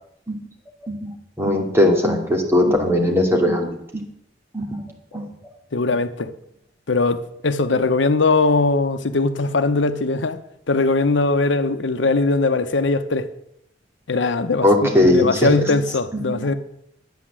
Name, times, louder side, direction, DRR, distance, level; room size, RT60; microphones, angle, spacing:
voice 1, 1.4-3.7 3.9-4.0 4.5-4.8 5.1-5.2 14.6-15.5, left 1 dB, 15° right, 2.5 m, -18 dB
voice 2, 5.7-6.3 6.9-10.4 10.7-13.3 14.1-16.5, left 3 dB, 85° left, 0.8 m, -20 dB
11.5 x 9.2 x 7.4 m
head